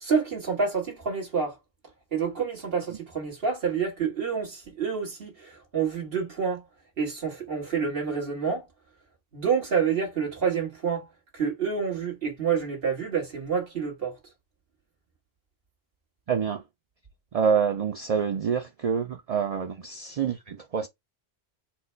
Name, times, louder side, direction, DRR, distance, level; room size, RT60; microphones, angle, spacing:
voice 1, 0.0-1.6 2.1-6.6 7.0-8.7 9.3-11.1 11.3-14.2, right 6 dB, 65° right, 1.7 m, -28 dB
voice 2, 16.3-16.6 17.3-20.9, right 6 dB, 50° right, 0.5 m, -27 dB
4.5 x 2.0 x 4.4 m
omnidirectional pair, 1.1 m